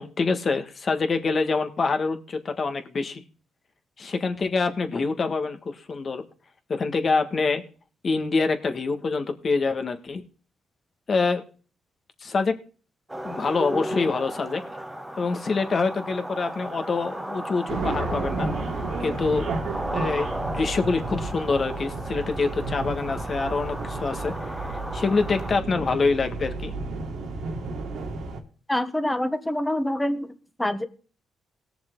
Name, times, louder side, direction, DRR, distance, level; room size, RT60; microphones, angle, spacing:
voice 1, 0.0-3.2 4.0-6.2 6.7-7.6 8.0-10.2 11.1-11.4 12.2-12.5 13.2-14.6 15.2-18.5 19.0-19.5 19.9-26.7, left 4 dB, 40° left, 6 dB, 1.7 m, -26 dB
sound 1, 13.1-25.6, right 1 dB, 5° right, 1.1 m, -35 dB
sound 2, 17.7-28.4, right 3 dB, 75° right, 2.2 m, -32 dB
voice 2, 28.7-30.3 30.6-30.8, left 1 dB, 10° left, 10 dB, 1.3 m, -25 dB
18.0 x 7.0 x 3.9 m, 0.39 s
cardioid pair, 90°, 0 cm